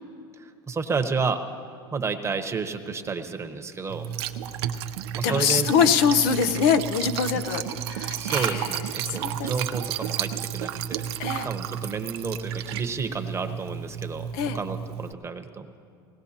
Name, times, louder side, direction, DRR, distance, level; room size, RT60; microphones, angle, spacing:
voice 1, 0.7-1.4 1.9-4.1 5.2-5.7 7.3-7.4 8.1-11.0 11.4-14.3 14.5-15.7, right 5 dB, 20° right, 7 dB, 1.0 m, -31 dB
Liquid, 3.9-15.1, right 10 dB, 80° right, 0.6 m, -32 dB
voice 2, 5.2-8.8 9.1-9.5 11.2-11.5 14.3-14.6, left 7 dB, 70° left, 9 dB, 0.8 m, -24 dB
20.0 x 18.0 x 2.9 m, 2.4 s
supercardioid pair, 100°, 13 cm